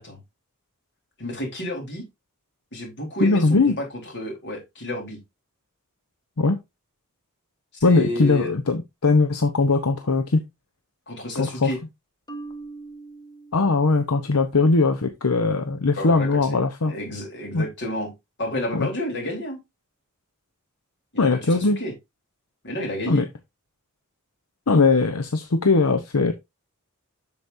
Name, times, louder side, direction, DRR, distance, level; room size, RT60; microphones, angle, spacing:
voice 1, 1.2-2.0 2.7-5.2 7.8-8.5 11.1-11.8 16.0-16.6 16.9-18.1 18.4-19.6 21.1-21.9 22.6-23.3, left 1 dB, 55° left, 3.8 m, -31 dB
voice 2, 3.2-3.8 6.4-6.6 7.8-10.4 11.4-11.7 13.5-16.9 17.5-17.7 18.7-18.9 21.2-21.8 23.1-23.3 24.7-26.3, left 3 dB, 75° left, 0.8 m, -20 dB
Marimba xylophone, 12.3-14.3, right 3 dB, 20° left, 1.1 m, -41 dB
8.0 x 7.1 x 2.6 m
head